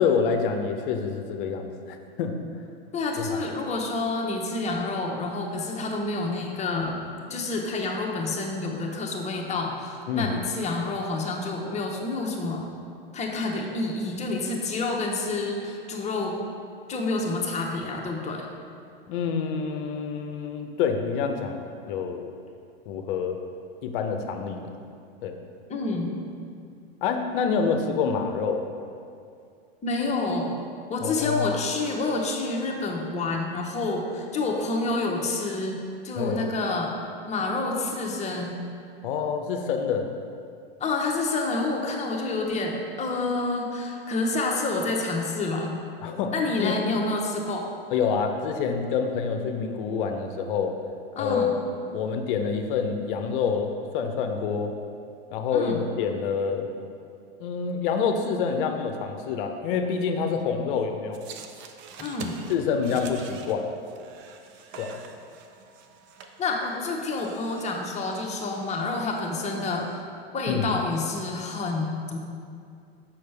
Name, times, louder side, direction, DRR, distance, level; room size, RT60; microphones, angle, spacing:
voice 1, 0.0-2.3 3.2-3.4 10.1-10.3 19.1-22.3 22.9-23.4 23.8-24.7 25.2-25.4 27.0-28.6 31.0-31.5 36.1-36.4 39.0-40.1 46.0-46.3 46.6-46.8 47.9-50.8 51.2-54.8 55.3-56.7 57.4-61.2 62.5-63.7 64.8-64.9 70.5-70.7, left 6 dB, 60° left, 5 dB, 0.7 m, -27 dB
voice 2, 2.9-7.0 7.3-12.7 13.1-16.4 16.9-18.5 25.7-26.2 29.8-30.6 30.9-36.9 37.3-38.6 40.8-45.7 46.3-47.7 51.2-51.5 55.5-55.8 62.0-62.4 66.4-70.0 70.3-72.2, left 3 dB, 20° left, 0 dB, 0.9 m, -28 dB
sound 1, 61.1-69.9, right 6 dB, 40° right, 0.6 m, -46 dB
6.5 x 5.6 x 3.4 m, 2.4 s
hypercardioid pair, 100°, 30 cm